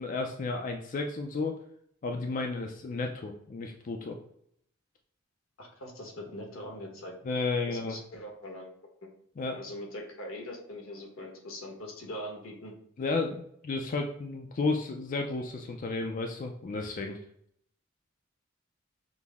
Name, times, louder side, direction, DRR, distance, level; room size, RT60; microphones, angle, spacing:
voice 1, 0.0-1.6 2.0-4.2 7.2-8.0 9.4-9.6 13.0-17.2, left 3 dB, 40° left, 3 dB, 0.4 m, -32 dB
voice 2, 5.6-7.1 7.7-8.7 9.5-12.7, left 1 dB, 85° left, 1 dB, 1.1 m, -42 dB
6.0 x 2.0 x 3.4 m, 0.70 s
head